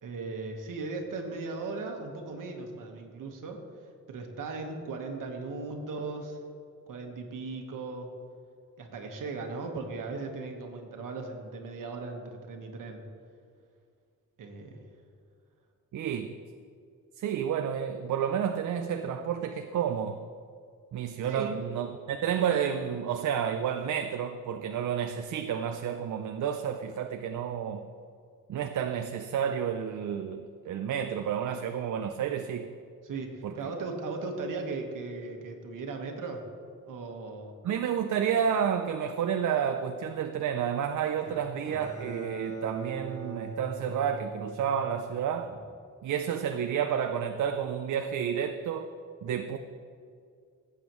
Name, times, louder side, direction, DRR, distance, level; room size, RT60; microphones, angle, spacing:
voice 1, 0.0-3.6 4.1-6.4 6.9-8.1 8.8-13.0 14.4-14.9 21.3-21.6 33.0-36.5 36.8-37.5 45.5-45.6, right 3 dB, 85° right, 3 dB, 1.4 m, -37 dB
voice 2, 15.9-16.3 17.2-20.2 20.9-27.8 28.5-32.7 33.4-33.5 37.6-45.5 46.0-48.9 49.2-49.6, right 8 dB, 70° right, 7 dB, 0.5 m, -30 dB
Bowed string instrument, 41.2-45.4, right 3 dB, 20° left, 2.8 m, -41 dB
17.0 x 8.2 x 3.1 m, 2.3 s
wide cardioid pair, 145°, 31 cm